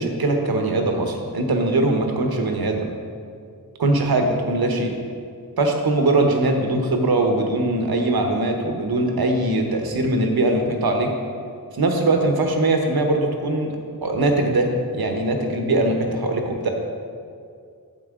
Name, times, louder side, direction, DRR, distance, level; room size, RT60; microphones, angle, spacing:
voice 1, 0.0-2.9 3.8-4.9 5.6-11.1 11.7-13.7 14.0-16.7, right 2 dB, 80° right, 3 dB, 1.0 m, -21 dB
8.9 x 7.5 x 3.7 m, 2.3 s
wide cardioid pair, 75°, 37 cm